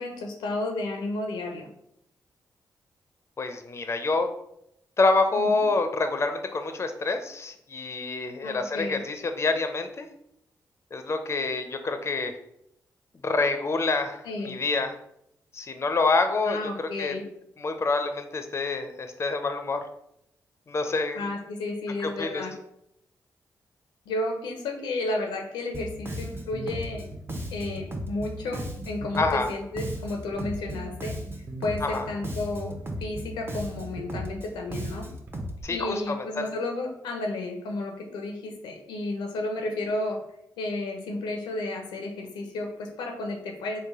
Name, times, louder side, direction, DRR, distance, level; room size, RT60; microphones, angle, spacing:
voice 1, 0.0-1.7 5.3-5.7 8.4-9.0 14.2-14.5 16.5-17.2 21.1-22.5 24.1-27.1 27.5-31.2 31.6-35.1 35.7-40.2 40.6-43.9, left 2 dB, 85° left, 3 dB, 0.5 m, -32 dB
voice 2, 3.4-4.3 5.0-10.1 10.9-12.3 13.2-14.9 15.5-17.1 17.6-19.8 20.7-21.2 22.0-22.5 29.2-29.5 31.8-32.1 35.6-36.5, left 3 dB, 35° left, 7 dB, 0.4 m, -27 dB
Bass guitar, 25.7-35.6, right 1 dB, 30° right, 0.7 m, -36 dB
3.1 x 2.2 x 3.5 m, 0.76 s
supercardioid pair, 45°, 8 cm